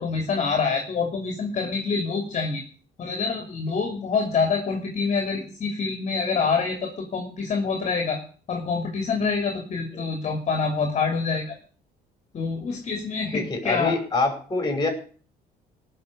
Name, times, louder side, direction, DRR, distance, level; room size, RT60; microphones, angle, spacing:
voice 1, 0.0-2.6 3.0-8.2 8.5-11.5 12.3-14.0, left 5 dB, 45° left, 3 dB, 3.1 m, -26 dB
voice 2, 13.3-14.9, left 3 dB, 25° left, 5 dB, 5.5 m, -25 dB
18.0 x 6.4 x 8.2 m, 0.43 s
cardioid pair, 110°, 17 cm